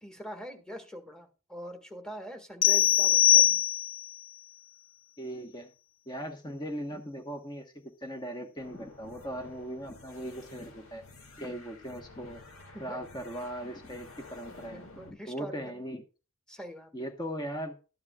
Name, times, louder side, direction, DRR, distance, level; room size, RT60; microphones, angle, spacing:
voice 1, 0.0-3.6 12.7-13.0 14.6-15.8 16.5-17.1, right 1 dB, 5° left, 5 dB, 1.8 m, -43 dB
sound 1, 2.6-4.1, left 12 dB, 60° left, 0.6 m, -22 dB
voice 2, 5.2-5.7 6.1-11.0 11.4-12.4 12.8-16.0 16.9-17.8, equal, 20° left, 5 dB, 1.2 m, -39 dB
sound 2, 8.6-15.1, left 2 dB, 75° left, 2.2 m, -51 dB
13.5 x 10.5 x 2.4 m, 0.34 s
head